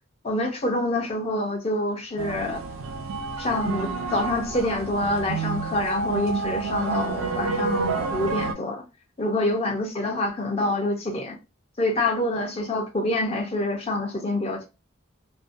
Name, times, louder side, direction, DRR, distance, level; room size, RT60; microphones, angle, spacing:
voice 1, 0.2-2.6 3.4-8.8 9.2-11.4 11.8-14.7, left 2 dB, 30° left, 0.5 m, -26 dB
sound 1, 2.2-8.5, right 4 dB, 90° right, 0.4 m, -29 dB
2.5 x 2.1 x 2.5 m
head